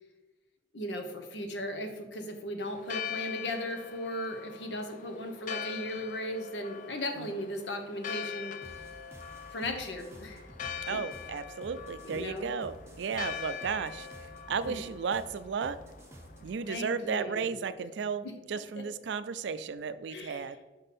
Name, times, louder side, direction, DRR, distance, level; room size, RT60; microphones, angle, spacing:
voice 1, 0.7-8.8 9.5-10.5 10.9-11.0 12.0-12.5 14.6-14.8 16.7-17.6 18.2-18.3 18.7-18.8 20.1-20.5, left 1 dB, 75° left, 5 dB, 1.0 m, -37 dB
Church bell, 2.7-16.8, left 8 dB, 45° left, 0.4 m, -43 dB
sound 1, 8.6-16.5, right 1 dB, 15° right, 0.8 m, -51 dB
voice 2, 10.9-15.8 16.4-20.6, right 5 dB, 80° right, 13 dB, 0.4 m, -34 dB
5.8 x 5.3 x 4.2 m, 1.2 s
head